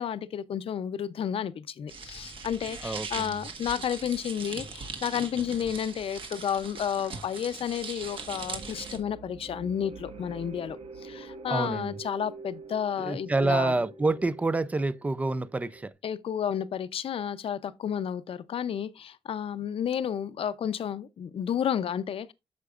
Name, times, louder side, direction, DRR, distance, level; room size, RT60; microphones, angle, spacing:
voice 1, 0.0-13.7 16.0-22.3, left 8 dB, 70° left, 0.6 m, -31 dB
sound 1, 1.9-9.0, right 4 dB, 60° right, 1.6 m, -40 dB
voice 2, 2.8-3.3 11.5-12.0 13.0-15.9, right 2 dB, 15° right, 0.4 m, -28 dB
sound 2, 5.8-15.9, right 4 dB, 90° right, 1.8 m, -47 dB
9.5 x 6.8 x 2.4 m
wide cardioid pair, 170°, 10 cm